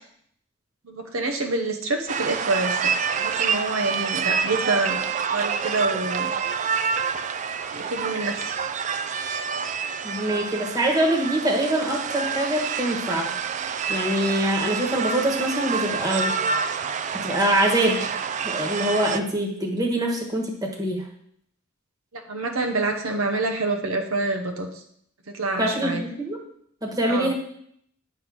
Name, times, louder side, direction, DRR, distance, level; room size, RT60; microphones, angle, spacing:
voice 1, 0.8-2.8 3.2-5.0 5.3-6.3 7.7-8.6 22.1-24.7 25.3-26.0 27.1-27.3, right 3 dB, 85° right, 3 dB, 0.9 m, -27 dB
sound 1, 2.1-19.2, right 6 dB, 35° right, 0.3 m, -28 dB
voice 2, 10.0-13.3 13.9-16.3 17.2-18.0 18.4-21.0 25.6-26.4 26.8-27.3, right 1 dB, 20° right, 0 dB, 1.3 m, -24 dB
9.6 x 3.6 x 6.1 m, 0.68 s
head